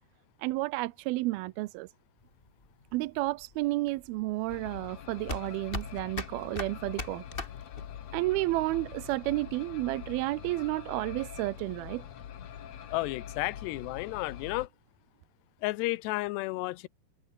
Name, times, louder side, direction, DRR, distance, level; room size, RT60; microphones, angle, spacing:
voice 1, 0.4-1.9 2.9-7.2 8.1-12.1, right 20 dB, 80° right, 2.4 m, -31 dB
sound 1, 2.2-8.2, left 3 dB, 15° left, 2.1 m, -40 dB
sound 2, 4.5-14.7, left 9 dB, 50° left, 2.3 m, -44 dB
voice 2, 12.9-14.7 15.6-16.9, left 20 dB, 85° left, 2.9 m, -32 dB
omnidirectional pair, 4.7 m